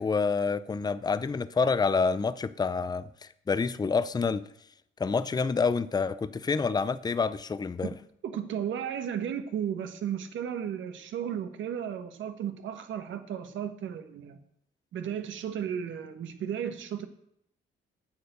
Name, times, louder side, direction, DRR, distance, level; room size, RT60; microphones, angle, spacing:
voice 1, 0.0-3.1 3.5-4.4 5.0-7.9, left 5 dB, 20° left, 0.6 m, -27 dB
voice 2, 8.2-14.4 14.9-17.1, right 9 dB, 75° right, 1.4 m, -34 dB
9.4 x 6.7 x 8.0 m
cardioid pair, 90°, 20 cm